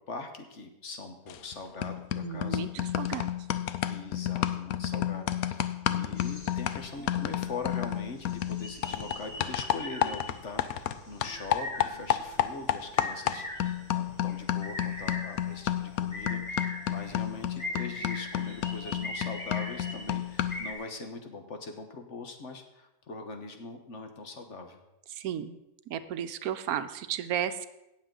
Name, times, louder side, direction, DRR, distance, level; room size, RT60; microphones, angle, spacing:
voice 1, 0.1-3.1 3.9-24.8, left 3 dB, 55° left, 5 dB, 1.3 m, -42 dB
sound 1, 1.3-1.5 1.8-11.0 11.2-20.7, left 11 dB, 75° left, 1.0 m, -31 dB
voice 2, 2.2-3.3 25.1-25.6 25.9-27.7, right 9 dB, 75° right, 11 dB, 1.1 m, -33 dB
sound 2, 6.2-20.7, left 1 dB, 25° left, 1.9 m, -42 dB
17.0 x 7.1 x 3.8 m, 0.92 s
omnidirectional pair, 1.6 m